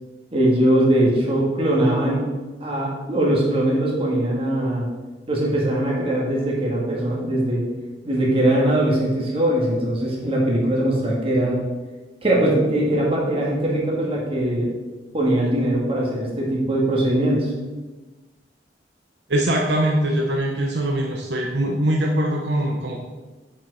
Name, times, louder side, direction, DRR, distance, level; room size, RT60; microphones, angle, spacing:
voice 1, 0.3-2.3 2.6-4.9 5.3-7.6 8.0-11.6 12.2-14.7 15.1-17.5, right 1 dB, 30° right, -3 dB, 1.9 m, -21 dB
voice 2, 19.3-23.0, right 1 dB, 75° right, 1 dB, 0.8 m, -22 dB
7.3 x 5.2 x 4.9 m, 1.2 s
head